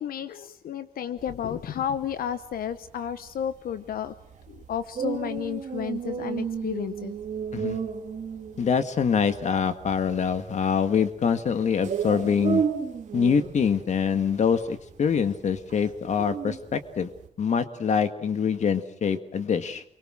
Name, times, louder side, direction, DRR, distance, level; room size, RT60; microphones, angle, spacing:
voice 1, 0.0-4.1 4.5-7.1, left 9 dB, 80° left, 12 dB, 0.9 m, -32 dB
sound 1, 1.2-17.3, right 7 dB, 55° right, 2.3 m, -34 dB
voice 2, 8.6-12.6 13.1-17.1 17.4-19.8, left 6 dB, 55° left, 10 dB, 1.8 m, -25 dB
29.0 x 23.5 x 6.4 m, 0.65 s
wide cardioid pair, 155°, 15 cm